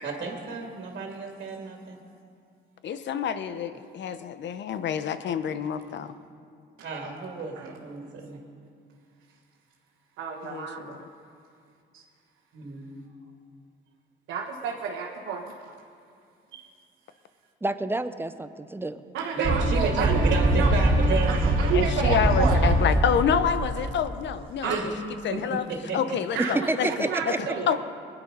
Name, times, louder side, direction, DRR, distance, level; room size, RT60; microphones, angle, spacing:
voice 1, 0.0-2.0 6.8-8.4 12.5-13.1 16.5-16.7 19.3-21.4 24.7-24.9 25.3-26.0, right 4 dB, 60° right, 1 dB, 2.2 m, -32 dB
voice 2, 2.8-6.1 10.4-10.9 21.7-24.7 25.2-25.6 25.9-27.8, left 8 dB, 65° left, 12 dB, 0.8 m, -28 dB
voice 3, 10.2-11.0 11.9-12.0 14.3-15.5 19.1-20.2 20.5-20.7 21.3-22.8 24.6-24.8 26.3-27.8, right 6 dB, 85° right, -2 dB, 1.4 m, -30 dB
voice 4, 17.6-19.0 26.4-27.4, right 2 dB, 10° right, 11 dB, 0.7 m, -29 dB
sound 1, 19.4-23.9, right 1 dB, 45° right, 2.4 m, -23 dB
21.0 x 10.0 x 5.4 m, 2.4 s
cardioid pair, 90°, 20 cm